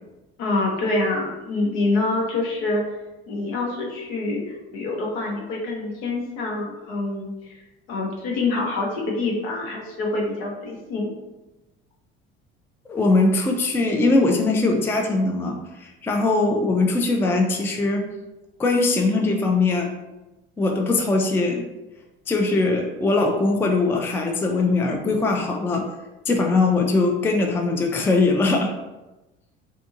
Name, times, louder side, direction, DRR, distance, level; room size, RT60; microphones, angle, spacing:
voice 1, 0.4-2.8 3.3-7.6 7.9-11.1, left 2 dB, 75° left, -1 dB, 0.8 m, -26 dB
voice 2, 12.9-18.1 18.6-19.9 20.6-21.6 22.3-25.8 26.3-28.7, left 3 dB, 10° left, 2 dB, 0.3 m, -21 dB
2.6 x 2.6 x 2.5 m, 1.0 s
hypercardioid pair, 65°, 31 cm